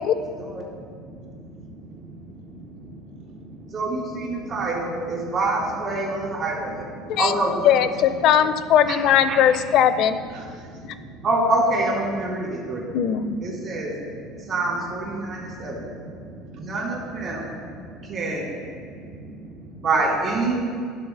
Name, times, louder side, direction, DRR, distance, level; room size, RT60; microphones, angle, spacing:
voice 1, 0.2-3.7 4.3-4.6 5.0-5.2 7.0-7.2 10.3-11.3 12.5-13.0 13.4-14.5 15.1-16.9 17.2-18.2 18.7-19.9, right 1 dB, 70° right, 1 dB, 1.3 m, -42 dB
voice 2, 3.7-6.8 7.2-7.7 8.9-9.0 9.3-9.4 11.2-12.8 13.4-14.0 14.4-15.8 16.5-17.5 18.0-18.6 19.8-20.6, right 2 dB, 50° right, -3 dB, 2.3 m, -25 dB
voice 3, 7.6-10.2 10.8-10.9 12.9-13.3, left 9 dB, 60° left, 12 dB, 0.5 m, -19 dB
10.5 x 3.9 x 6.5 m, 2.1 s
supercardioid pair, 110°, 0 cm